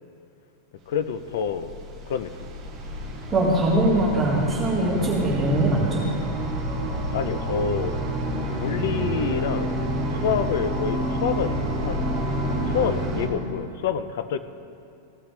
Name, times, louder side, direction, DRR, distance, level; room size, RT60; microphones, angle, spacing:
voice 1, 0.9-1.7 2.1-2.5 7.1-8.0 8.5-9.8 10.1-12.1 12.7-14.4, left 7 dB, 60° left, 12 dB, 0.5 m, -27 dB
sound 1, 1.1-13.3, right 1 dB, 25° right, 2.0 m, -28 dB
voice 2, 3.3-6.1, right 1 dB, 10° right, -8 dB, 1.9 m, -22 dB
16.0 x 5.9 x 3.3 m, 2.5 s
supercardioid pair, 180°, 0 cm